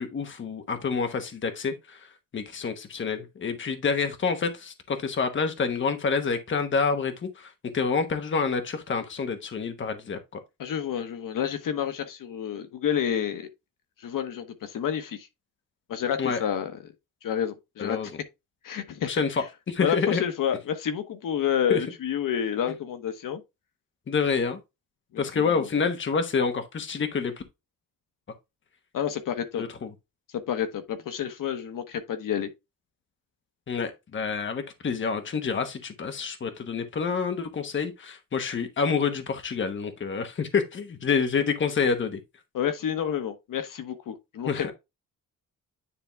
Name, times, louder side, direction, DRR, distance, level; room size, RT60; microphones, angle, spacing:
voice 1, 0.0-2.1 2.3-10.4 16.2-16.4 17.8-18.1 19.0-19.3 19.7-20.2 21.7-21.8 24.1-24.6 25.2-27.3 29.6-29.9 33.7-42.2 44.4-44.7, left 5 dB, 35° left, 1.2 m, -28 dB
voice 2, 10.6-13.5 14.0-15.3 15.9-16.7 17.2-18.1 18.6-19.4 19.8-23.4 25.1-25.7 28.9-29.6 30.3-32.5 42.5-44.7, left 9 dB, 75° left, 1.2 m, -29 dB
9.9 x 3.5 x 3.4 m
wide cardioid pair, 165°, 33 cm